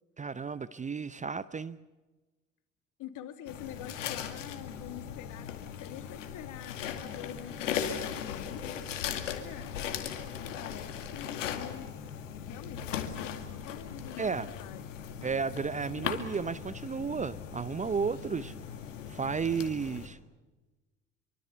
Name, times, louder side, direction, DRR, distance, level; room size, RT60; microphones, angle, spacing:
voice 1, 0.2-1.8 14.2-14.5 15.2-18.5 19.1-20.2, right 5 dB, 20° right, 16 dB, 0.8 m, -33 dB
voice 2, 3.0-9.7 10.2-15.3, left 10 dB, 55° left, 8 dB, 2.8 m, -46 dB
sound 1, 3.5-20.1, left 8 dB, 75° left, 2.3 m, -38 dB
25.0 x 24.5 x 7.0 m, 1.2 s
figure-of-eight pair, 65°, 38 cm